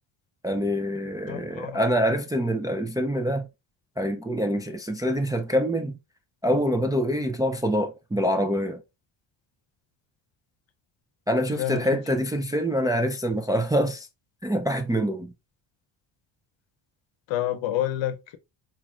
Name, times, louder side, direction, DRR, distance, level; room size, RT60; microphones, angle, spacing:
voice 1, 0.4-3.5 4.0-6.0 6.4-8.8 11.3-14.1 14.4-15.3, equal, 10° right, 0.3 m, -25 dB
voice 2, 1.3-1.9 11.5-11.9 17.3-18.4, left 12 dB, 70° left, 0.7 m, -29 dB
4.3 x 3.0 x 2.4 m
cardioid pair, 105°, 47 cm